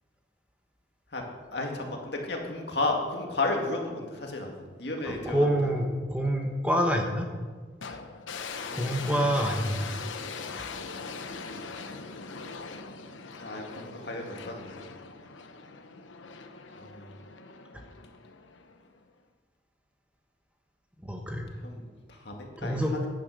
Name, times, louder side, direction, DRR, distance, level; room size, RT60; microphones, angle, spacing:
voice 1, 1.5-5.5 8.6-8.9 13.4-14.8 16.7-17.2 21.6-23.1, left 2 dB, 60° left, 1 dB, 2.0 m, -33 dB
voice 2, 5.0-7.3 7.9-8.0 8.7-9.9 21.0-21.5 22.6-22.9, equal, 5° right, 2 dB, 1.1 m, -27 dB
sound 1, 7.8-19.0, left 4 dB, 85° left, 0.9 m, -41 dB
10.5 x 9.9 x 6.5 m, 1.5 s
head